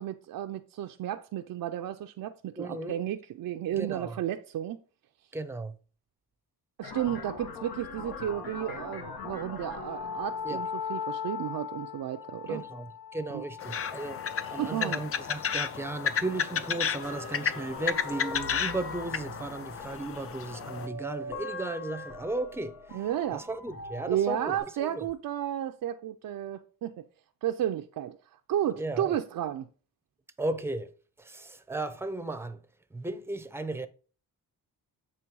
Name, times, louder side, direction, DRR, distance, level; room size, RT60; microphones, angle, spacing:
voice 1, 0.0-4.8 6.8-12.6 13.3-13.4 14.6-15.0 22.9-23.4 24.1-27.0 27.4-28.2 28.5-29.7, right 11 dB, 70° right, 0.5 m, -32 dB
voice 2, 2.6-3.0 3.7-4.2 5.3-5.8 10.4-10.6 12.5-14.2 14.5-23.0 23.3-25.1 28.8-29.2 30.4-32.6 32.9-33.9, right 2 dB, 5° right, 0.5 m, -35 dB
sound 1, 6.8-24.6, left 5 dB, 85° left, 1.2 m, -40 dB
sound 2, 13.6-20.9, left 7 dB, 40° left, 0.4 m, -33 dB
7.4 x 3.1 x 4.6 m
cardioid pair, 85°, 36 cm